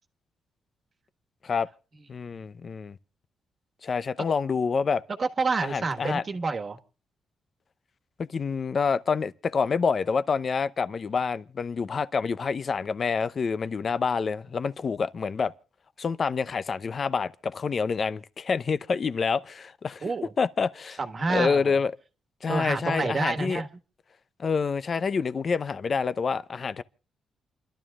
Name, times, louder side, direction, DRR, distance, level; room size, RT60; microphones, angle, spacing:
voice 1, 2.1-3.0 3.8-5.0 5.6-6.2 8.2-15.5 16.0-21.0 21.3-21.9 22.4-23.6 24.4-26.8, left 5 dB, 45° left, 0.7 m, -27 dB
voice 2, 5.2-6.8 20.0-20.3 21.0-21.7 22.5-23.7, right 4 dB, 40° right, 1.5 m, -28 dB
28.5 x 12.5 x 2.4 m
cardioid pair, 95°, 0 cm